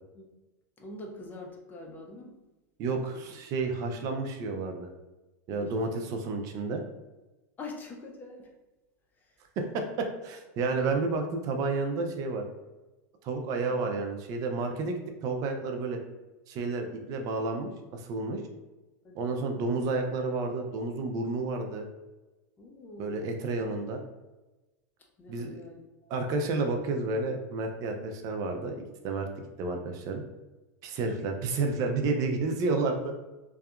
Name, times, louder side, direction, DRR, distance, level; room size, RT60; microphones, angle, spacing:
voice 1, 0.8-2.4 2.9-3.2 5.5-5.7 7.6-8.5 9.2-9.4 16.9-17.1 19.0-19.7 22.6-23.4 25.2-26.2 31.0-31.3, left 2 dB, 20° left, 1 dB, 0.5 m, -45 dB
voice 2, 2.8-4.9 5.5-6.8 9.6-12.4 13.2-16.0 16.5-18.4 19.1-21.9 23.0-24.0 25.3-25.6 26.1-29.3 29.6-30.2 30.8-33.1, right 3 dB, 40° right, 4 dB, 0.4 m, -31 dB
2.7 x 2.3 x 2.3 m, 1.1 s
supercardioid pair, 130°, 9 cm